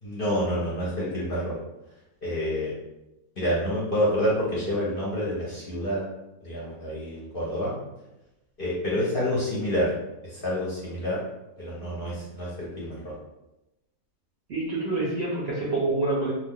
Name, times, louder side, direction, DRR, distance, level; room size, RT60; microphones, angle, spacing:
voice 1, 0.0-1.6 2.2-2.7 3.4-6.0 6.4-7.7 8.6-9.9 10.2-11.2 11.6-13.1, equal, 45° left, -7 dB, 0.7 m, -28 dB
voice 2, 14.5-16.3, right 2 dB, 60° right, -6 dB, 0.7 m, -27 dB
2.4 x 2.4 x 3.5 m, 0.94 s
omnidirectional pair, 1.7 m